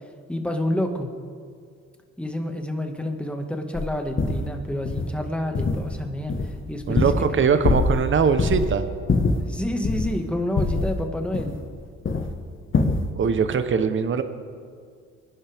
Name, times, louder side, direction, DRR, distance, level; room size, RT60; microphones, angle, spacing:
voice 1, 0.3-1.1 2.2-7.7 9.5-11.5, left 1 dB, 5° left, 4 dB, 1.8 m, -29 dB
sound 1, 3.7-3.9 4.2-4.5 4.9-5.1 5.5-6.0 6.3-7.4 7.6-8.1 8.4-8.7 9.1-10.2 10.6-11.8 12.1-12.3 12.7-13.1, left 3 dB, 40° left, 1.5 m, -23 dB
voice 2, 6.9-8.8 13.2-14.2, right 6 dB, 40° right, 9 dB, 1.0 m, -21 dB
24.5 x 11.0 x 3.6 m, 2.1 s
cardioid pair, 90°, 30 cm